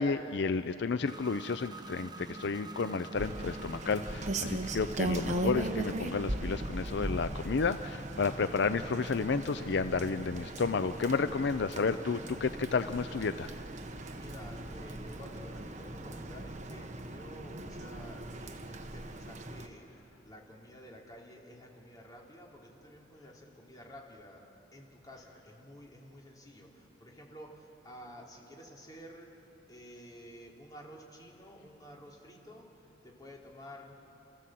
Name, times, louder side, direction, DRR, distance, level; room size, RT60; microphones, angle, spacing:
voice 1, 0.0-13.5, left 4 dB, 65° left, 11 dB, 0.5 m, -31 dB
sound 1, 1.0-19.5, right 2 dB, 25° right, 0.9 m, -48 dB
Rain, 3.1-19.7, right 1 dB, 40° right, 1.2 m, -39 dB
voice 2, 14.2-29.4 29.7-34.0, equal, 20° left, -2 dB, 3.3 m, -51 dB
29.5 x 15.0 x 7.6 m, 2.9 s
head